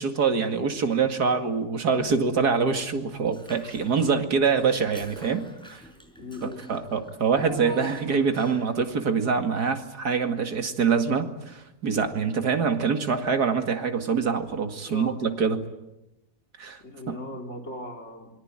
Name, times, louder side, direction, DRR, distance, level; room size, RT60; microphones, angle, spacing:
voice 1, 0.0-5.8 6.4-15.7 16.6-16.8 17.1-17.2, right 5 dB, 80° right, 6 dB, 2.7 m, -25 dB
Child speech kid speaking / Bathtub (filling or washing), 3.3-4.2 4.6-8.8, equal, 5° left, 5.2 m, -44 dB
voice 2, 6.2-7.0 14.8-15.2 16.8-18.3, left 2 dB, 45° left, 2 dB, 4.2 m, -38 dB
27.0 x 23.0 x 9.0 m, 0.92 s
omnidirectional pair, 1.7 m